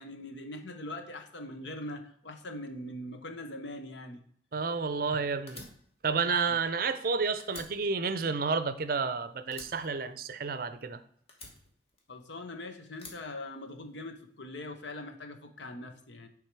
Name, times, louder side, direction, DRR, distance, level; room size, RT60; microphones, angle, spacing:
voice 1, 0.0-4.2 12.1-16.3, left 1 dB, 75° left, 6 dB, 0.9 m, -42 dB
voice 2, 4.5-5.6 6.0-11.0, right 4 dB, 50° right, 12 dB, 0.5 m, -30 dB
Fire, 5.5-7.1 7.4-9.1 9.5-10.8 11.3-12.4 12.9-14.1, left 2 dB, 30° left, 1.4 m, -50 dB
9.9 x 3.6 x 4.6 m, 0.64 s
head